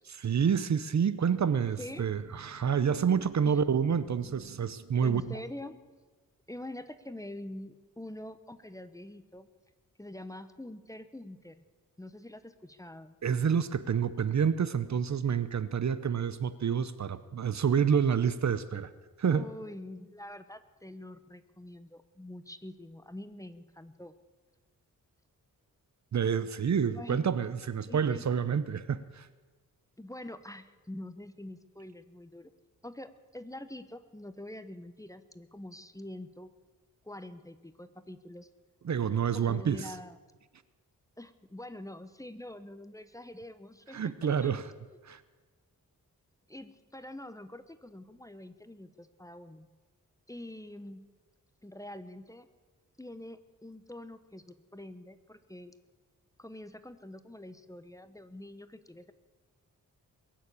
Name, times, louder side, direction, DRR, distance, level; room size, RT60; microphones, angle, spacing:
voice 1, 0.2-5.4 13.2-18.9 19.2-19.4 26.1-29.3 38.8-39.9 43.9-44.7 45.0-45.2, right 7 dB, 55° right, 15 dB, 0.8 m, -28 dB
sound 1, 1.2-5.4, right 7 dB, 85° right, 1.6 m, -52 dB
voice 2, 1.8-2.1 3.5-3.6 5.0-5.8 6.5-9.5 10.0-11.6 12.0-13.2 19.3-24.1 26.9-27.3 27.9-28.3 30.0-32.5 32.8-36.5 37.0-38.5 39.3-40.2 41.2-44.5 46.5-49.7 50.3-51.0 51.6-52.5 53.0-55.7 56.4-59.1, left 1 dB, 10° left, 11 dB, 0.9 m, -45 dB
22.0 x 7.4 x 8.3 m, 1.3 s
cardioid pair, 85°, 34 cm